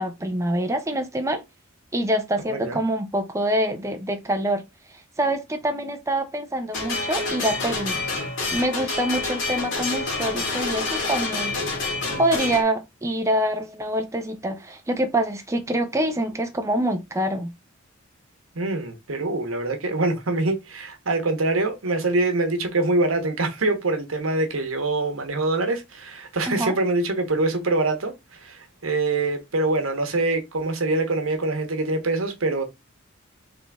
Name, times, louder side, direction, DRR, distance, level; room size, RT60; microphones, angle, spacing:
voice 1, 0.0-1.4 1.9-4.6 5.2-8.0 8.5-11.6 12.2-17.5 26.5-26.7, right 1 dB, 15° right, 0.7 m, -25 dB
voice 2, 2.5-2.8 18.5-32.6, right 2 dB, 85° right, 1.2 m, -24 dB
sound 1, 6.7-12.6, left 3 dB, 60° left, 2.2 m, -27 dB
3.9 x 3.8 x 3.5 m
head